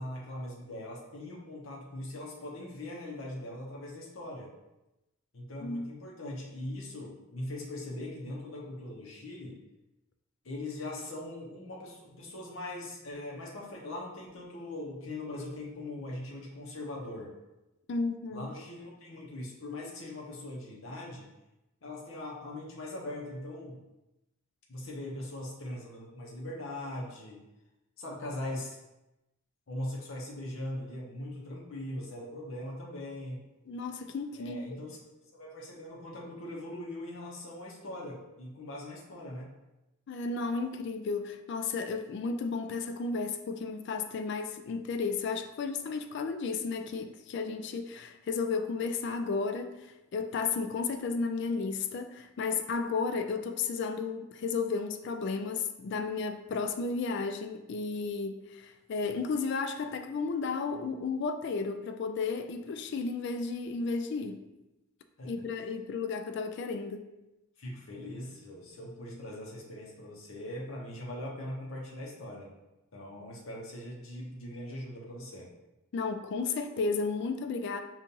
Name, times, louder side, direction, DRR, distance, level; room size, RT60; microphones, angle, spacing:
voice 1, 0.0-4.5 5.3-9.6 10.4-17.3 18.3-21.3 21.8-23.8 24.7-27.4 28.0-28.8 29.7-33.4 34.4-35.0 35.3-39.5 65.2-65.3 67.6-72.5 72.9-75.5, left 1 dB, 70° left, -3 dB, 0.7 m, -41 dB
voice 2, 5.6-5.9 17.9-18.5 33.7-34.8 40.1-49.8 50.1-64.4 65.2-67.0 75.9-77.8, left 4 dB, 55° left, 8 dB, 0.3 m, -33 dB
5.2 x 2.4 x 2.8 m, 0.97 s
head